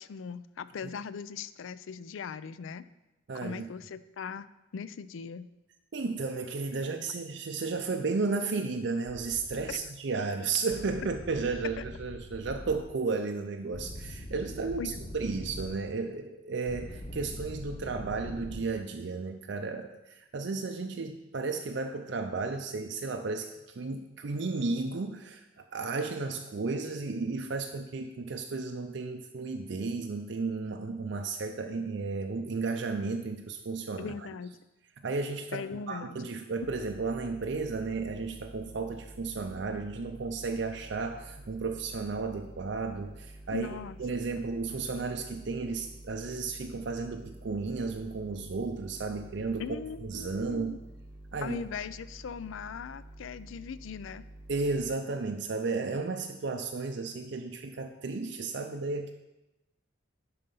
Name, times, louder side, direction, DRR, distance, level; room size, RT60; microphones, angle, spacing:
voice 1, 0.0-2.9 3.3-4.5 4.7-5.5 9.7-9.9 11.8-11.9 14.8-15.0 34.0-34.6 35.5-36.2 43.5-44.0 49.6-50.8 51.4-54.2, left 6 dB, 75° left, 15 dB, 0.4 m, -39 dB
voice 2, 3.3-3.7 5.9-34.1 35.0-43.7 44.0-49.6 50.1-50.8 51.3-51.6 54.5-59.1, right 4 dB, 60° right, 5 dB, 0.5 m, -33 dB
sound 1, 9.0-9.7 10.7-12.8 13.7-15.8 16.7-18.6, left 1 dB, 35° left, 0.7 m, -43 dB
sound 2, 36.6-55.0, right 1 dB, 5° right, 1.2 m, -49 dB
11.0 x 4.2 x 5.4 m, 0.98 s
head